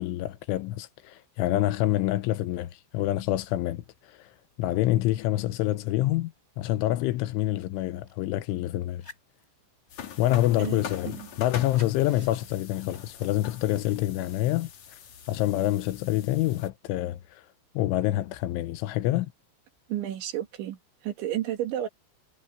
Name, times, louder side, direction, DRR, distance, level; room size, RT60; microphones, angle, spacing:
voice 1, 0.0-3.8 4.6-9.0 10.2-14.7 15.3-17.4 17.7-19.3, left 15 dB, 80° left, 3.2 m, -27 dB
sound 1, 7.4-8.4 8.8-14.0, left 1 dB, 10° left, 8.0 m, -54 dB
sound 2, 9.9-16.7, left 8 dB, 55° left, 2.1 m, -43 dB
voice 2, 10.6-11.3 19.9-21.9, right 12 dB, 70° right, 4.3 m, -32 dB
omnidirectional pair, 5.9 m